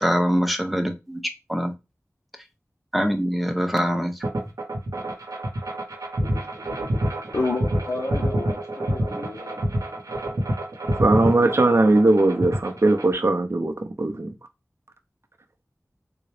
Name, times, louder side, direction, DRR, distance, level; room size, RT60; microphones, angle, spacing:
voice 1, 0.0-1.2 1.5-1.7 2.9-4.1, equal, ahead, 0.7 m, -23 dB
sound 1, 4.2-13.1, right 1 dB, 90° right, 0.8 m, -27 dB
voice 2, 7.3-9.7, left 3 dB, 60° left, 0.6 m, -30 dB
voice 3, 11.0-14.3, right 2 dB, 50° right, 0.6 m, -19 dB
3.9 x 2.3 x 3.3 m
wide cardioid pair, 45°, 6 cm